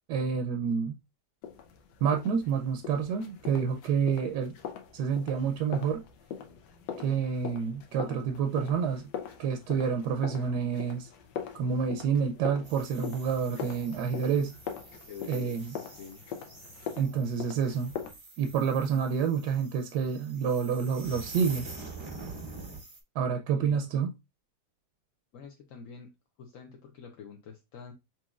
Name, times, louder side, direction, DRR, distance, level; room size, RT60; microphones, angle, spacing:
voice 1, 0.1-1.0 2.0-4.6 4.9-6.0 7.0-9.1 9.4-11.1 11.5-14.6 15.3-15.8 17.0-17.9 18.4-21.7 23.2-24.1, right 6 dB, 75° right, 1.1 m, -28 dB
sound 1, 1.4-18.1, left 8 dB, 85° left, 1.4 m, -42 dB
sound 2, 12.6-23.0, right 3 dB, 40° right, 0.3 m, -46 dB
voice 2, 14.9-15.7 16.0-16.2 23.6-23.8 25.3-26.1 26.4-27.9, left 6 dB, 65° left, 0.9 m, -46 dB
6.0 x 2.8 x 2.3 m
omnidirectional pair, 1.8 m